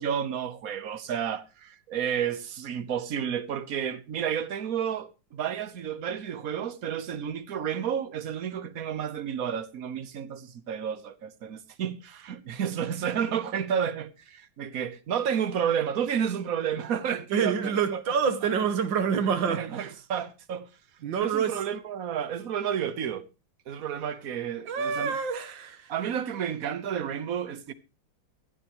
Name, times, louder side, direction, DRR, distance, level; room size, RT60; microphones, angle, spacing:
voice 1, 0.0-18.0 19.4-20.7 21.1-23.3 23.7-25.2 25.9-27.7, right 8 dB, 55° right, 1.2 m, -31 dB
voice 2, 17.3-19.9 21.0-21.6 24.7-25.9, right 6 dB, 80° right, 1.8 m, -27 dB
17.0 x 12.0 x 3.0 m
omnidirectional pair, 2.1 m